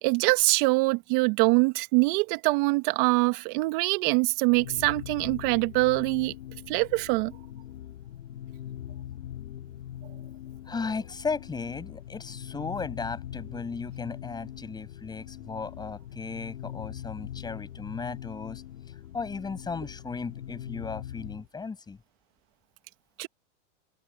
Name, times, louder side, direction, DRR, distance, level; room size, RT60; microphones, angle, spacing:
voice 1, 0.0-6.3 6.7-7.3 23.2-23.3, right 26 dB, 45° right, 2.1 m, -24 dB
sound 1, 4.5-21.5, left 11 dB, 80° left, 6.1 m, -42 dB
voice 2, 10.7-18.6 19.1-22.0, left 4 dB, 10° left, 7.9 m, -36 dB
open air
supercardioid pair, 145°, 37 cm